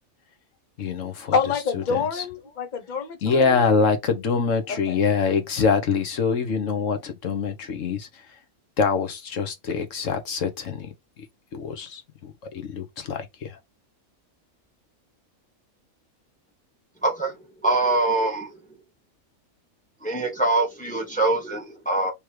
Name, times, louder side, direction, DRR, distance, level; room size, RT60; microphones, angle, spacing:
voice 1, 0.8-1.4 1.7-2.2 3.2-8.4 8.8-11.3 11.5-13.6, left 5 dB, 70° left, 1.3 m, -25 dB
voice 2, 1.3-3.5 4.7-5.0, left 5 dB, 40° left, 0.9 m, -27 dB
voice 3, 17.0-17.4 17.6-18.6 20.0-22.1, right 2 dB, 5° left, 1.2 m, -23 dB
3.5 x 3.1 x 4.6 m
omnidirectional pair, 1.4 m